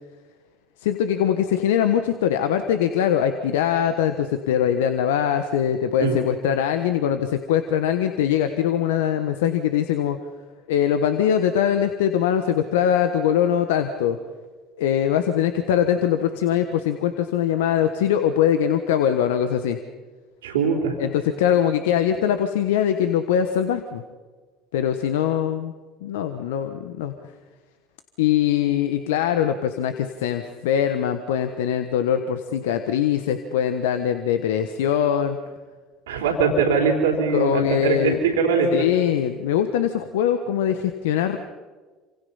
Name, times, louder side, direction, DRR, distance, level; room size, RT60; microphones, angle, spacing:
voice 1, 0.8-10.2 10.7-14.2 14.8-19.8 21.0-24.0 24.7-25.7 26.0-27.1 28.2-35.4 37.3-38.2 38.7-41.4, left 9 dB, 80° left, 9 dB, 1.2 m, -22 dB
voice 2, 20.4-20.9 36.1-38.9, right 5 dB, 85° right, 1 dB, 3.6 m, -21 dB
28.0 x 26.5 x 5.7 m, 1.4 s
hypercardioid pair, 65°, 0 cm